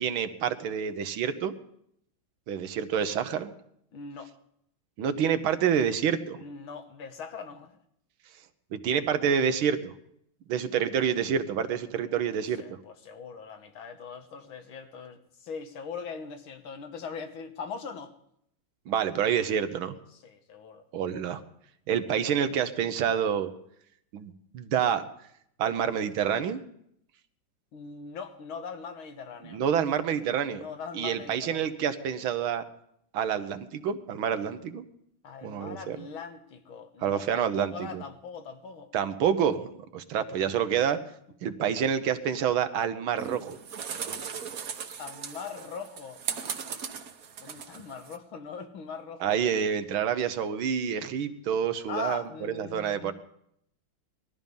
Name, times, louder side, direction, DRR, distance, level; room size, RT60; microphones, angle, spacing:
voice 1, 0.0-1.5 2.5-3.5 5.0-6.4 8.7-9.9 10.5-12.6 18.9-20.0 20.9-21.4 21.9-23.5 24.1-25.0 25.6-26.6 29.4-30.6 30.9-32.6 33.1-34.9 35.4-36.0 37.0-38.0 38.9-41.0 41.4-43.6 49.2-53.1, right 8 dB, 80° right, 10 dB, 1.8 m, -28 dB
voice 2, 3.9-4.3 6.4-7.8 12.5-18.1 20.1-20.8 27.7-29.6 30.5-31.7 35.2-38.9 41.5-41.6 45.0-46.2 47.4-49.4 51.9-53.1, left 5 dB, 85° left, 7 dB, 2.1 m, -41 dB
sound 1, 43.2-48.2, right 7 dB, 55° right, 1.3 m, -38 dB
19.5 x 13.0 x 5.4 m, 0.73 s
omnidirectional pair, 2.2 m